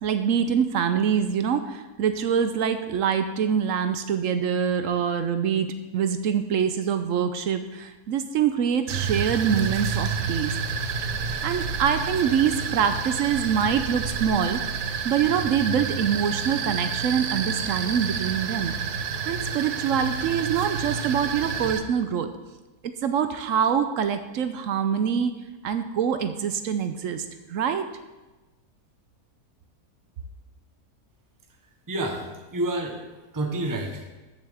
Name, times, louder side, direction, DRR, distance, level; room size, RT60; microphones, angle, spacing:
voice 1, 0.0-10.5 11.4-14.6 15.0-18.7 19.0-22.3 23.0-25.3 25.6-27.2 27.5-27.9, right 7 dB, 65° right, 9 dB, 0.9 m, -25 dB
sound 1, 8.9-21.8, right 6 dB, 85° right, 1.3 m, -29 dB
voice 2, 31.9-33.0 33.3-34.1, right 1 dB, 15° right, 3 dB, 0.9 m, -29 dB
14.0 x 6.7 x 3.5 m, 1.1 s
omnidirectional pair, 1.6 m